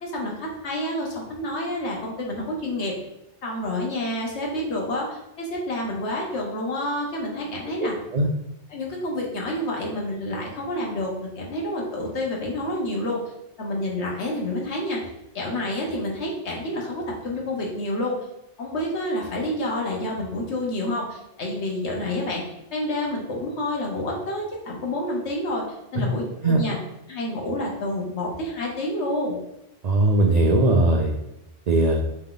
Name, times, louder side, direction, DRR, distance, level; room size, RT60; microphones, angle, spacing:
voice 1, 0.0-3.0 3.4-7.9 8.7-13.2 13.6-15.0 15.3-18.2 18.6-22.4 22.7-25.6 25.9-26.8 27.1-29.4, left 1 dB, 70° left, -2 dB, 1.3 m, -28 dB
voice 2, 7.8-8.3 26.4-26.6 29.8-31.1 31.7-32.0, right 2 dB, 65° right, 1 dB, 0.4 m, -19 dB
3.6 x 3.3 x 3.8 m, 0.88 s
omnidirectional pair, 1.2 m